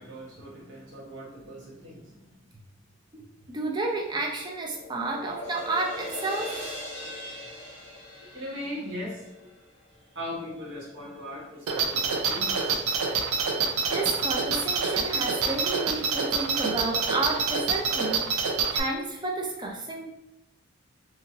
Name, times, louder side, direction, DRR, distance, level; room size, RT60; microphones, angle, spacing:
voice 1, 0.0-2.3 8.3-9.3 10.1-13.1, left 1 dB, 60° right, -5 dB, 1.1 m, -39 dB
voice 2, 3.5-6.6 7.0-7.1 13.9-18.5 18.7-20.0, right 2 dB, 20° right, 0 dB, 0.4 m, -31 dB
sound 1, 3.8-10.2, left 1 dB, 55° left, 0.8 m, -40 dB
sound 2, 11.7-18.8, right 5 dB, 85° right, 0.4 m, -26 dB
2.8 x 2.6 x 2.7 m, 0.89 s
head